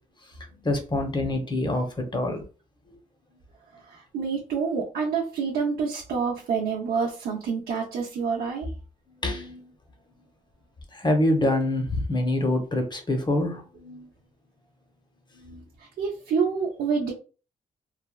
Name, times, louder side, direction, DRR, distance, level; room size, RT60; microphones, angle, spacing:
voice 1, 0.6-2.4 9.2-9.6 10.9-14.1 15.3-15.6, left 1 dB, 30° left, 0.8 m, -26 dB
voice 2, 3.9-8.7 15.8-17.1, right 5 dB, 90° right, 0.6 m, -27 dB
3.2 x 2.1 x 2.2 m
cardioid pair, 80°, 15 cm